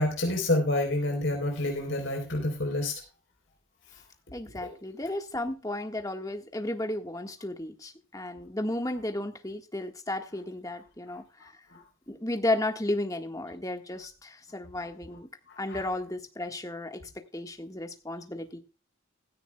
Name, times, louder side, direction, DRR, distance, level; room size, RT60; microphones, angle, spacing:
voice 1, 0.0-2.9 4.6-4.7 11.7-11.8 15.5-15.8, left 1 dB, 60° left, 4.0 m, -28 dB
voice 2, 4.3-11.5 12.1-15.3 15.6-17.0 17.3-18.6, left 1 dB, 15° left, 1.6 m, -33 dB
16.5 x 13.5 x 2.3 m
head